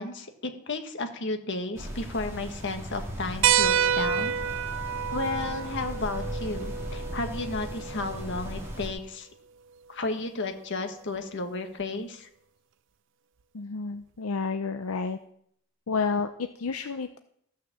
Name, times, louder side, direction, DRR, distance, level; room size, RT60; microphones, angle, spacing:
voice 1, 0.0-4.4 5.1-9.3 9.9-12.3, left 3 dB, 60° left, 5 dB, 1.6 m, -33 dB
sound 1, 1.7-8.9, equal, 10° right, 3.0 m, -37 dB
sound 2, 3.4-8.5 10.0-10.1 11.8-11.9, right 9 dB, 60° right, 0.4 m, -28 dB
voice 2, 13.5-15.2 15.9-17.2, left 4 dB, 80° left, 8 dB, 0.6 m, -30 dB
14.0 x 6.6 x 7.3 m, 0.70 s
head